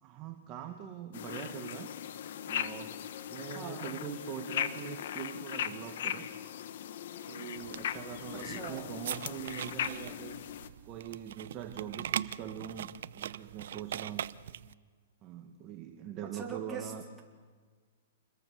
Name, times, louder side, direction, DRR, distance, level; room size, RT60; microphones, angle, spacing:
voice 1, 0.0-1.9 2.4-3.0 3.3-6.3 7.3-10.4 10.8-14.2 15.2-17.0, right 9 dB, 30° right, 5 dB, 1.6 m, -43 dB
sound 1, 1.1-10.7, left 10 dB, 60° left, 1.4 m, -39 dB
voice 2, 3.5-3.9 8.3-8.9 16.2-16.9, right 5 dB, 10° right, 0 dB, 3.5 m, -42 dB
sound 2, 7.6-14.7, right 10 dB, 65° right, 0.7 m, -41 dB
27.5 x 21.5 x 7.0 m, 1.5 s
hypercardioid pair, 155°, 0 cm